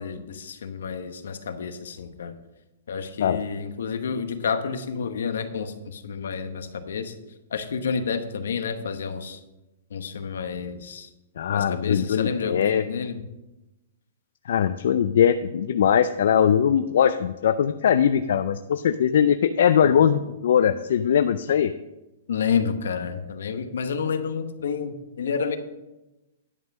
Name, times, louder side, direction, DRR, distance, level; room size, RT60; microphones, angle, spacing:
voice 1, 0.0-2.3 2.9-7.1 7.5-9.4 9.9-11.1 11.5-13.2 19.8-20.1 22.3-25.6, left 6 dB, 85° left, 9 dB, 1.1 m, -29 dB
voice 2, 11.4-12.8 14.5-21.7, left 8 dB, 70° left, 10 dB, 0.4 m, -21 dB
11.0 x 5.6 x 6.2 m, 1.0 s
hypercardioid pair, 160°, 0 cm